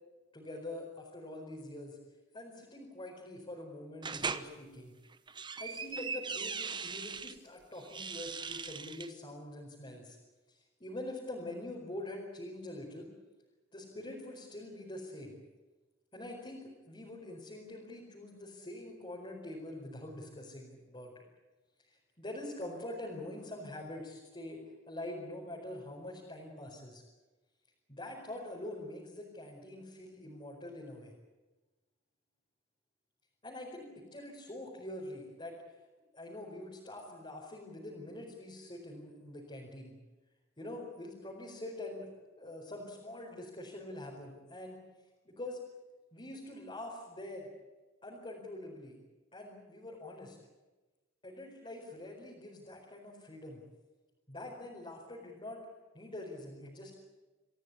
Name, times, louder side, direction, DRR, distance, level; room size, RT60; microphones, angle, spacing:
voice 1, 0.3-2.0 2.3-4.9 5.6-10.2 10.5-13.1 13.7-15.4 16.1-21.2 21.9-27.0 27.9-31.1 33.4-35.6 36.1-39.9 40.6-42.1 42.4-44.8 45.2-45.6 46.1-47.5 48.0-49.0 49.3-50.4 51.2-53.6 54.3-55.6 55.9-56.9, left 1 dB, 25° left, -4 dB, 4.8 m, -45 dB
sound 1, 4.0-4.5 5.1-7.3 7.8-9.1, right 5 dB, 25° right, 1.0 m, -39 dB
26.5 x 15.5 x 9.7 m, 1.2 s
head